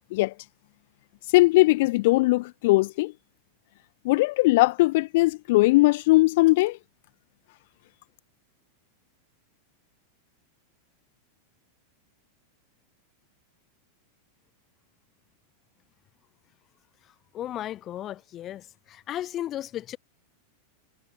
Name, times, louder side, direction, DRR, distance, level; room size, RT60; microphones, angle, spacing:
voice 1, 1.3-3.1 4.0-6.8, left 20 dB, 50° left, 1.1 m, -20 dB
voice 2, 17.3-20.0, left 12 dB, 30° left, 0.8 m, -35 dB
figure-of-eight pair, 90°, 0 cm